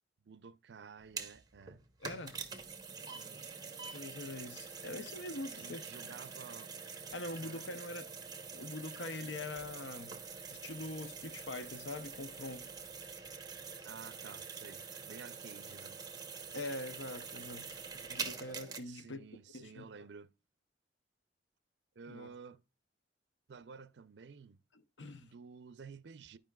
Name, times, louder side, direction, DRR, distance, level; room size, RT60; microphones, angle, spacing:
voice 1, 0.2-1.8 3.1-3.8 5.5-6.8 7.4-7.7 13.8-16.0 18.9-20.3 22.0-22.6 23.5-24.6 25.2-26.4, right 5 dB, 65° right, 0.5 m, -52 dB
sound 1, 1.0-18.8, right 5 dB, 20° right, 0.9 m, -46 dB
voice 2, 2.0-2.4 3.9-5.8 7.1-8.1 8.5-10.2 10.5-12.7 16.5-17.8 18.1-19.2 19.5-19.9 22.1-22.3 24.7-25.3, left 2 dB, 90° left, 0.7 m, -43 dB
11.5 x 5.0 x 2.3 m
head